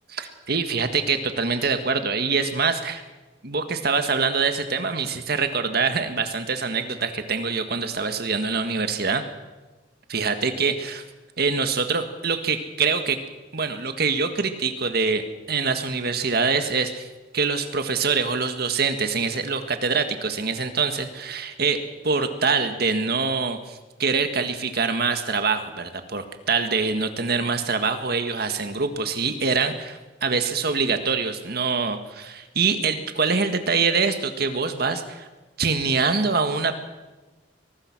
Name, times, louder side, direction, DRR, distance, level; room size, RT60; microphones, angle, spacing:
voice 1, 0.2-3.0 3.4-9.2 10.1-11.0 11.4-13.2 13.5-17.1 17.3-35.3 35.6-36.8, right 4 dB, 60° right, 8 dB, 1.7 m, -24 dB
23.5 x 19.5 x 6.1 m, 1.2 s
head